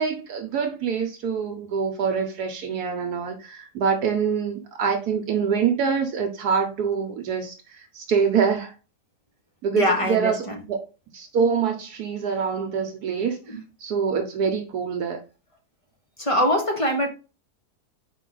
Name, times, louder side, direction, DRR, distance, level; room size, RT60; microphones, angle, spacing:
voice 1, 0.0-8.7 9.6-10.8 11.1-15.2, right 6 dB, 75° right, 1.3 m, -25 dB
voice 2, 9.7-10.6 13.5-13.6 16.2-17.1, left 1 dB, 20° left, 1.1 m, -23 dB
5.6 x 4.6 x 3.9 m
omnidirectional pair, 1.7 m